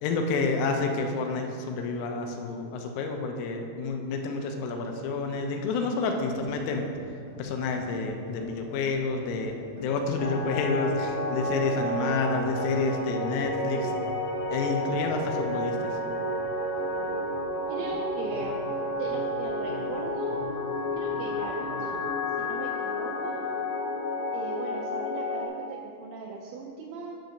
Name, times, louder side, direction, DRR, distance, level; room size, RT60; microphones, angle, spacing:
voice 1, 0.0-6.8 7.4-13.9 14.5-15.8, left 3 dB, 90° left, 3 dB, 3.2 m, -29 dB
sound 1, 6.3-22.3, equal, 65° right, 1.2 m, -47 dB
sound 2, 10.2-25.5, left 1 dB, 75° left, 2.3 m, -31 dB
voice 2, 17.7-18.6 19.0-20.4 20.9-22.1 22.4-23.5 24.3-27.2, right 4 dB, 85° right, -1 dB, 2.6 m, -38 dB
11.5 x 5.8 x 2.6 m, 2.4 s
omnidirectional pair, 5.5 m